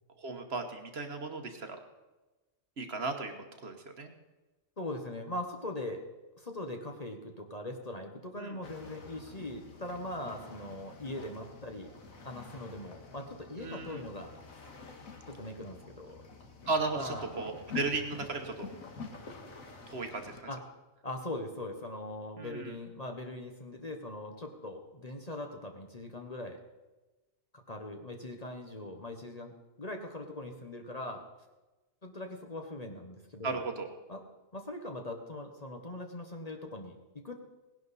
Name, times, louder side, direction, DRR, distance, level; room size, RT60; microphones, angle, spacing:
voice 1, 0.2-1.8 2.8-4.1 8.4-8.5 13.6-14.0 16.7-18.7 19.9-20.4 22.4-22.7 33.4-33.9, right 3 dB, 50° right, 5 dB, 1.4 m, -35 dB
voice 2, 4.8-6.0 6.4-11.9 12.2-14.6 15.3-16.2 16.9-17.6 20.5-20.6 21.0-26.6 27.5-31.3 32.0-33.7 34.1-34.2 34.5-37.4, left 1 dB, 30° left, 3 dB, 1.1 m, -41 dB
sound 1, 8.6-20.4, left 4 dB, 80° left, 2.0 m, -48 dB
18.0 x 11.0 x 4.1 m, 1.1 s
omnidirectional pair, 1.4 m